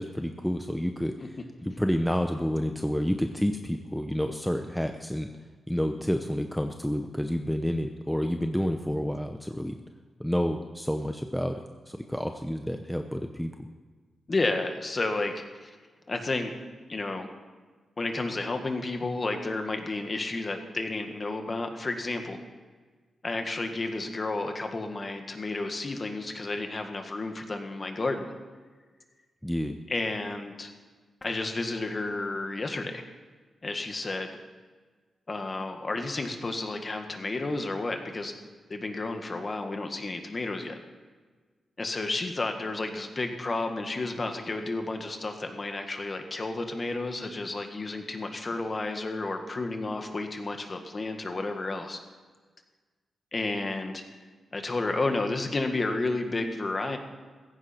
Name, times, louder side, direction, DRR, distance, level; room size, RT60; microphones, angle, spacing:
voice 1, 0.0-1.3 1.6-5.3 5.7-9.8 10.2-13.5 29.4-29.8, equal, 5° left, 5 dB, 0.7 m, -29 dB
voice 2, 14.3-15.7 16.1-16.6 16.9-17.3 18.0-22.4 23.2-28.3 29.9-30.7 31.2-33.0 33.6-34.3 35.3-38.3 38.7-40.8 41.8-52.0 53.3-54.0 54.5-57.0, left 2 dB, 35° left, 5 dB, 1.7 m, -31 dB
15.5 x 15.0 x 4.5 m, 1.4 s
wide cardioid pair, 115°, 0 cm